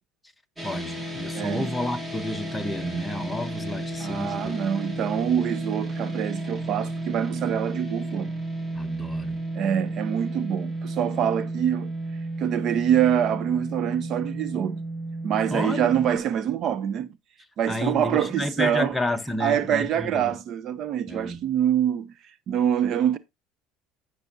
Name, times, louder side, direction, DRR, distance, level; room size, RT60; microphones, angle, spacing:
voice 1, 0.6-4.7 8.7-9.5 15.5-16.2 17.7-20.4 21.1-21.5, left 1 dB, 5° left, 0.8 m, -31 dB
sound 1, 0.6-16.2, right 2 dB, 15° right, 2.1 m, -33 dB
voice 2, 1.3-1.7 4.0-8.3 9.6-11.9 12.4-14.8 15.2-17.1 17.6-18.9 19.4-22.1 22.5-23.2, right 9 dB, 45° right, 0.5 m, -25 dB
15.0 x 6.0 x 2.6 m
cardioid pair, 145°, 0 cm